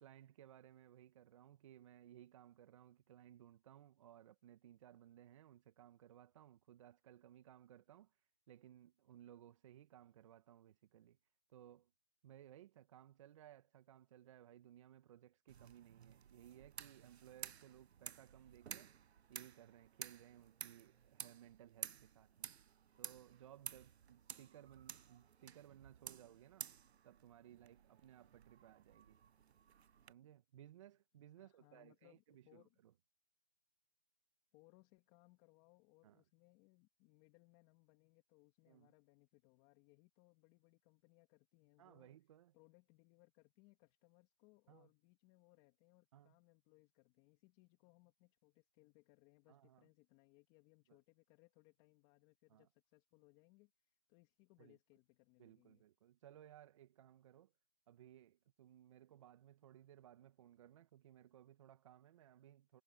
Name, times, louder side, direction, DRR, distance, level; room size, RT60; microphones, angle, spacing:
voice 1, 0.0-8.2 8.5-11.2 11.5-11.9 12.2-18.9 19.3-22.5 23.0-26.7 27.0-29.2 30.1-32.9 36.0-36.2 38.7-38.9 41.8-42.5 44.7-44.9 46.1-46.3 49.5-49.9 50.9-51.0 52.5-52.7 54.6-54.8 55.4-57.5 57.9-62.8, right 11 dB, 30° right, 1.4 m, -61 dB
sound 1, 15.5-30.1, right 8 dB, 70° right, 0.7 m, -54 dB
voice 2, 31.4-32.8 34.5-42.1 42.5-55.8, left 25 dB, 20° left, 2.5 m, -70 dB
hypercardioid pair, 155°, 33 cm